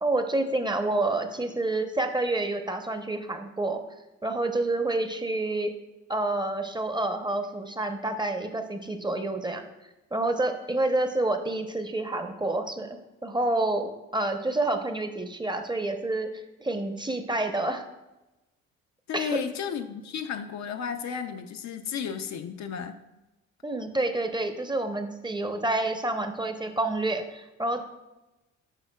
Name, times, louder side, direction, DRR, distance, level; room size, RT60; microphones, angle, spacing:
voice 1, 0.0-3.8 4.2-5.7 6.1-9.7 10.1-13.0 13.2-17.8 19.1-19.4 23.6-27.8, right 2 dB, 15° right, 6 dB, 0.7 m, -28 dB
voice 2, 19.1-23.0, left 7 dB, 55° left, 7 dB, 0.5 m, -33 dB
9.0 x 5.4 x 2.3 m, 1.0 s
hypercardioid pair, 50°, 34 cm